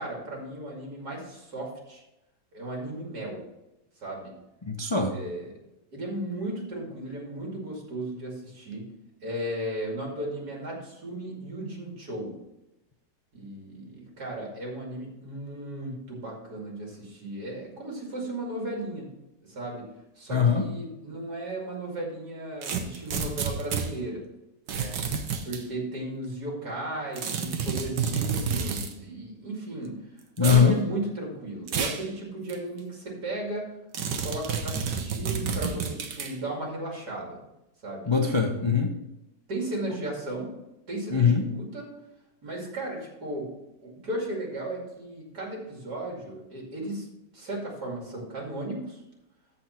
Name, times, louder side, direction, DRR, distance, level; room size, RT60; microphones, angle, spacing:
voice 1, 0.0-2.0 2.5-3.4 4.0-4.3 5.1-5.5 5.9-8.8 9.2-12.3 13.3-19.1 19.4-19.9 20.2-24.2 24.7-24.9 25.4-30.0 30.4-33.7 34.2-37.4 37.8-38.1 39.5-40.5 40.9-41.9 42.4-43.5 43.8-47.1 47.3-49.0, right 1 dB, 65° right, -1 dB, 3.0 m, -35 dB
voice 2, 4.6-5.1 20.3-20.7 30.4-30.8 38.1-38.9 41.1-41.4, left 6 dB, 35° left, 2 dB, 0.4 m, -21 dB
sound 1, 22.6-23.9 24.7-25.6 27.2-28.9 30.4-30.7 31.7-32.0 32.5-32.6 33.9-36.3, right 6 dB, 80° right, 1.6 m, -30 dB
13.5 x 4.6 x 4.3 m, 0.94 s
omnidirectional pair, 1.8 m